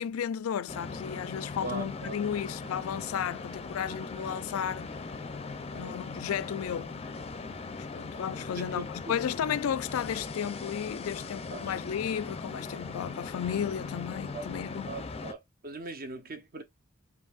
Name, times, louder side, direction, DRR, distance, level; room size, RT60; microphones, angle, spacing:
voice 1, 0.0-4.9 5.7-6.9 7.8-14.9, left 8 dB, 85° left, 0.4 m, -33 dB
sound 1, 0.7-15.3, left 4 dB, 30° left, 0.5 m, -39 dB
voice 2, 1.6-2.2 5.7-6.0 8.5-8.8 11.5-11.7 14.3-14.5 14.9-16.6, right 3 dB, 45° right, 1.0 m, -40 dB
5.2 x 2.7 x 2.4 m
head